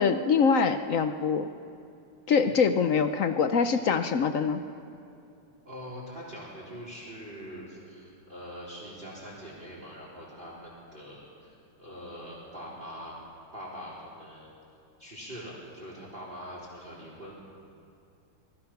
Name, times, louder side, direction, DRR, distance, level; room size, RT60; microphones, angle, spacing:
voice 1, 0.0-1.5 2.3-4.6, left 5 dB, 75° left, 9 dB, 0.7 m, -24 dB
voice 2, 5.6-13.1 13.5-14.6 15.0-17.3, equal, 25° right, -4 dB, 4.0 m, -43 dB
25.5 x 20.5 x 5.9 m, 2.5 s
omnidirectional pair, 2.3 m